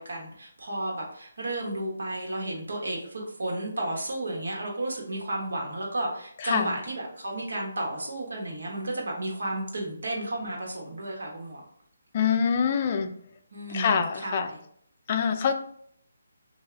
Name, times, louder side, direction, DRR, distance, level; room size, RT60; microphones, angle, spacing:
voice 1, 0.0-11.6 13.5-14.6, right 1 dB, 70° right, -1 dB, 1.1 m, -33 dB
voice 2, 6.4-6.7 12.1-13.1 13.7-14.5 15.1-15.5, left 6 dB, 35° left, 7 dB, 0.4 m, -25 dB
3.3 x 2.7 x 3.3 m, 0.64 s
hypercardioid pair, 160°, 0 cm